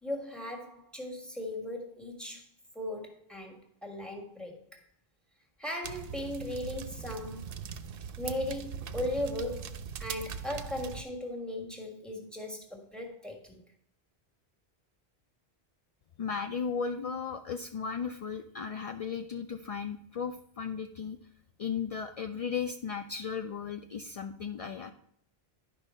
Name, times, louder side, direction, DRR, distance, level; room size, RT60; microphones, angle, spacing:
voice 1, 0.0-2.5 2.7-4.8 5.6-7.5 8.2-13.6, left 1 dB, ahead, 3 dB, 1.5 m, -38 dB
sound 1, 5.8-11.0, right 7 dB, 65° right, 0.8 m, -40 dB
voice 2, 16.2-21.2 21.6-24.9, left 6 dB, 55° left, 7 dB, 0.4 m, -35 dB
10.5 x 5.4 x 4.3 m, 0.71 s
omnidirectional pair, 1.1 m